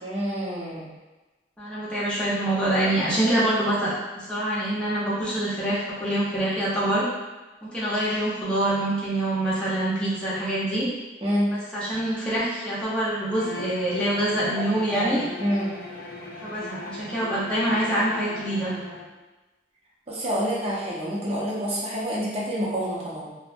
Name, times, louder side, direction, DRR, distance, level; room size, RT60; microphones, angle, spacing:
voice 1, 0.0-0.9 11.2-11.5 14.9-15.7 20.1-23.3, equal, 35° right, -6 dB, 0.7 m, -27 dB
voice 2, 1.6-7.0 7.6-10.9 11.7-15.2 16.4-18.7, right 1 dB, 5° left, -10 dB, 0.8 m, -25 dB
Bowed string instrument, 13.3-19.1, left 2 dB, 55° left, 0.5 m, -39 dB
2.5 x 2.1 x 2.5 m, 1.1 s
head